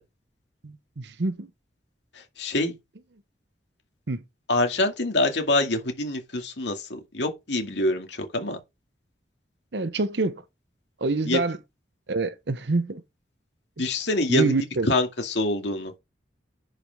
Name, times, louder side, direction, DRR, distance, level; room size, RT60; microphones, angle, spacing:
voice 1, 0.6-1.5 4.1-4.2 9.7-10.4 11.0-11.6 12.1-13.0 14.3-14.9, right 3 dB, 70° right, 0.8 m, -26 dB
voice 2, 2.4-2.7 4.5-8.6 11.3-11.4 13.8-14.5 14.9-15.9, left 1 dB, 75° left, 2.2 m, -25 dB
10.5 x 5.1 x 3.6 m
head